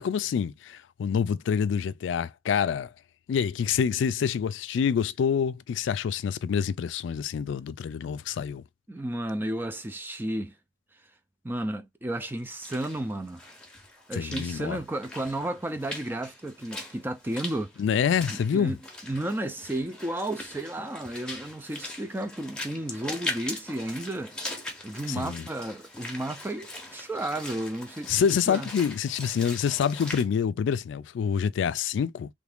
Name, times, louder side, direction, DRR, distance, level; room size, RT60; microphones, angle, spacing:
voice 1, 0.0-2.9 3.3-8.6 14.1-14.8 17.8-18.7 25.1-25.4 28.1-32.3, left 7 dB, 85° left, 0.3 m, -27 dB
voice 2, 8.9-10.6 11.4-13.4 14.1-17.7 18.3-18.8 19.1-24.3 24.8-28.2 28.5-28.7, right 1 dB, 10° right, 0.3 m, -33 dB
Walk footsteps / Splash splatter, 12.4-30.2, left 1 dB, 5° left, 0.7 m, -41 dB
3.1 x 2.5 x 3.4 m
head